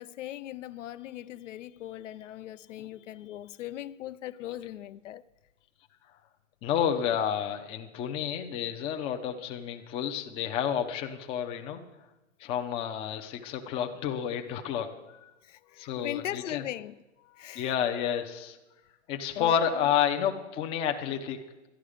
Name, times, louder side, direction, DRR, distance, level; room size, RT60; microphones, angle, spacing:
voice 1, 0.0-5.2 15.4-17.0 17.2-17.7 19.3-19.9, left 13 dB, 75° left, 0.5 m, -39 dB
voice 2, 6.6-11.8 12.4-14.9 15.2-15.3 15.8-16.6 17.5-18.6 19.1-21.4, left 9 dB, 15° left, 0.5 m, -30 dB
11.5 x 10.5 x 5.0 m
hypercardioid pair, 140°, 38 cm